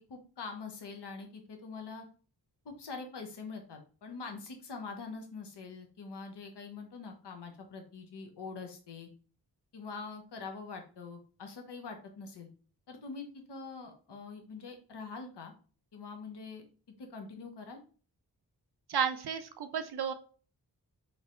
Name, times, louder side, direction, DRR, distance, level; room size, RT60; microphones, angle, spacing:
voice 1, 0.1-2.0 2.6-9.1 9.7-12.5 12.9-15.5 15.9-16.6 17.0-17.8, left 4 dB, 75° left, 4 dB, 0.9 m, -44 dB
voice 2, 18.9-20.1, right 7 dB, 65° right, 8 dB, 0.5 m, -32 dB
3.2 x 2.6 x 4.2 m, 0.39 s
cardioid pair, 45°, 42 cm